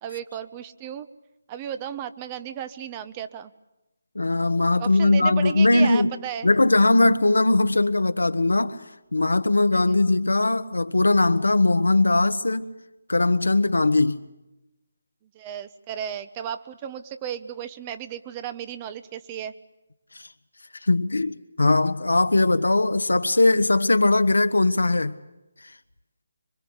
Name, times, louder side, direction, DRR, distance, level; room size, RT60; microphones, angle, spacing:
voice 1, 0.0-1.1 1.5-3.5 4.8-6.5 9.7-10.0 15.3-19.5, right 9 dB, 20° right, 1.0 m, -34 dB
voice 2, 4.1-6.1 6.4-8.8 9.1-12.7 13.1-14.2 20.9-25.1, left 2 dB, 90° left, 1.3 m, -20 dB
25.5 x 24.0 x 8.2 m
figure-of-eight pair, 160°, 0 cm